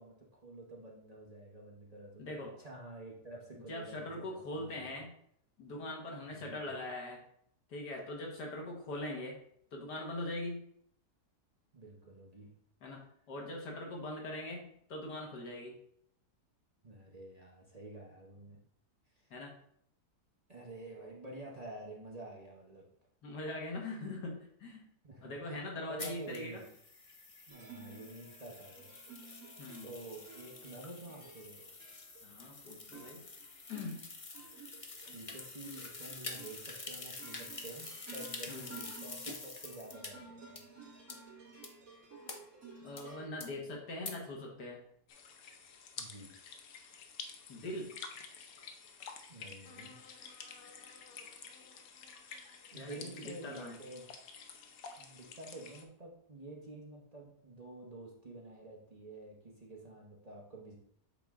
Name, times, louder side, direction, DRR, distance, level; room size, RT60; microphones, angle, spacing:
voice 1, 0.0-4.9 6.3-6.7 11.7-12.5 16.8-18.6 19.2-19.3 20.5-22.9 25.0-26.6 27.5-28.9 29.8-31.7 35.1-40.6 46.0-46.3 49.3-50.0 52.7-54.1 55.0-60.8, right 2 dB, 30° right, -3 dB, 0.9 m, -49 dB
voice 2, 2.2-2.5 3.5-5.1 5.6-7.2 7.7-9.4 9.7-10.7 12.8-15.7 19.3-19.6 23.2-24.9 25.2-26.7 29.6-29.9 32.2-33.2 33.7-34.0 38.5-38.7 42.8-44.8 47.5-47.9 52.7-53.8, left 1 dB, 85° left, 0 dB, 2.0 m, -42 dB
sound 1, 26.0-40.1 40.6-40.7 41.1-41.2 41.6-41.7 42.3-42.4 43.0-43.1 43.4-43.5 44.0-44.1, left 3 dB, 50° left, 0.4 m, -47 dB
sound 2, 27.5-43.3, right 4 dB, 60° right, 2.2 m, -54 dB
sound 3, 45.1-55.8, left 6 dB, 70° left, 1.1 m, -50 dB
8.2 x 3.6 x 3.6 m, 0.69 s
omnidirectional pair, 1.7 m